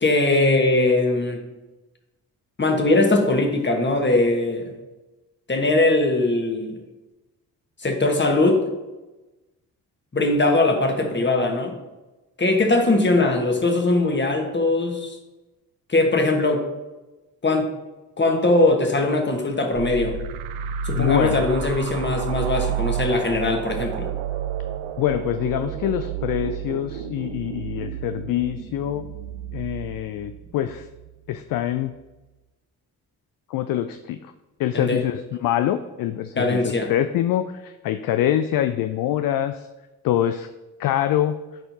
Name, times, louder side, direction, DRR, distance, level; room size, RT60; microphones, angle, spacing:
voice 1, 0.0-1.4 2.6-4.7 5.5-6.8 7.8-8.6 10.1-11.7 12.4-15.2 15.9-16.6 17.4-17.7 18.2-20.1 20.8-24.1 34.7-35.0 36.4-36.9, left 2 dB, 25° left, 3 dB, 1.4 m, -20 dB
sound 1, 19.7-31.1, right 8 dB, 70° right, 0.6 m, -30 dB
voice 2, 21.0-21.4 25.0-29.1 29.5-30.9 31.3-31.9 33.5-34.3 34.6-39.7 40.0-40.5 40.8-41.4, left 11 dB, 50° left, 10 dB, 0.4 m, -25 dB
10.0 x 4.3 x 2.8 m, 1.1 s
hypercardioid pair, 45°, 46 cm